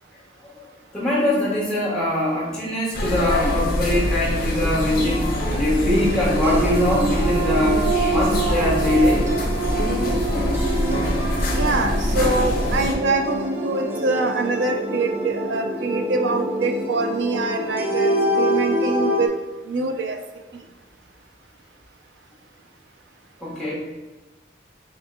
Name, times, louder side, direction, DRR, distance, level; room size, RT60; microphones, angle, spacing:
voice 1, 0.9-9.2 23.4-23.7, left 1 dB, 5° left, -8 dB, 1.3 m, -22 dB
sound 1, 2.9-12.9, left 1 dB, 55° left, 0.7 m, -24 dB
sound 2, 5.5-19.3, right 2 dB, 10° right, 0.4 m, -26 dB
voice 2, 11.6-19.3 19.7-20.2, right 3 dB, 85° right, 5 dB, 0.5 m, -24 dB
4.4 x 3.8 x 2.3 m, 1.2 s
head